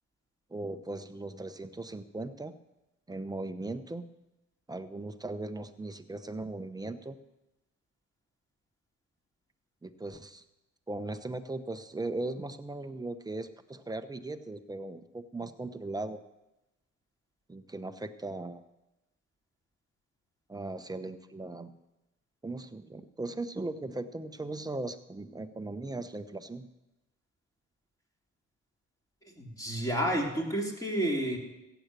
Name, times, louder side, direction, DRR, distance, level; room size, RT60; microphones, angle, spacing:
voice 1, 0.5-2.5 3.1-4.0 4.7-7.2 9.8-10.4 10.9-16.2 17.5-18.6 20.5-21.7 22.4-26.7, right 2 dB, 15° right, 9 dB, 0.9 m, -38 dB
voice 2, 29.3-31.4, right 1 dB, 10° left, 0 dB, 3.1 m, -30 dB
15.5 x 8.1 x 6.2 m, 0.98 s
cardioid pair, 90°, 30 cm